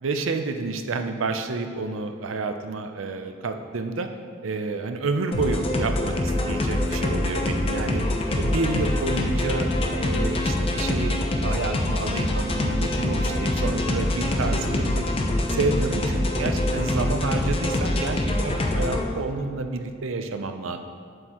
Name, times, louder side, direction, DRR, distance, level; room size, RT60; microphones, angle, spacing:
voice 1, 0.0-4.1 4.4-8.0 8.4-15.0 15.5-20.8, right 3 dB, 85° right, 7 dB, 0.5 m, -29 dB
sound 1, 5.3-19.0, left 1 dB, 30° left, 0.6 m, -25 dB
8.2 x 7.6 x 3.0 m, 2.1 s
head